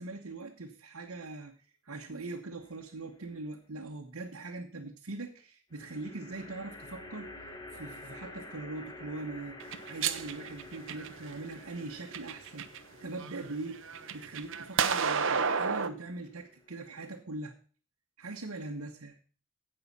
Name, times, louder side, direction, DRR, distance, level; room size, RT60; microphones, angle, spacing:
voice 1, 0.0-1.5 1.8-9.6 9.9-12.7 13.0-13.8 14.1-17.5 18.2-19.2, right 2 dB, 80° right, 1 dB, 1.1 m, -41 dB
sound 1, 2.6-3.2 5.7-17.1, left 2 dB, 20° left, 1.3 m, -50 dB
sound 2, 9.6-11.3 11.9-12.8 13.2-15.9, right 6 dB, 60° right, 0.8 m, -31 dB
15.5 x 5.6 x 5.4 m, 0.41 s
head